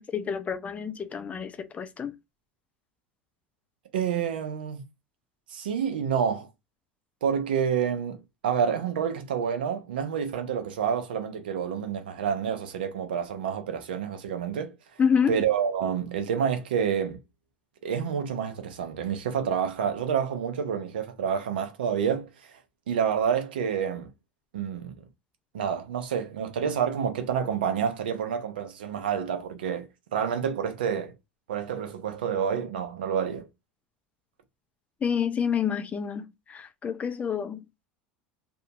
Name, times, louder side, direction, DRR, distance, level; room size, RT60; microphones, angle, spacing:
voice 1, 0.0-2.1 15.0-15.4 35.0-37.6, left 7 dB, 25° left, 0.5 m, -28 dB
voice 2, 3.9-4.9 5.5-6.5 7.2-8.2 8.4-14.7 15.3-17.2 17.8-22.6 22.9-24.1 24.5-24.9 25.5-31.1 31.5-33.5, right 7 dB, 80° right, 0.7 m, -28 dB
2.7 x 2.6 x 2.3 m
hypercardioid pair, 90°, 5 cm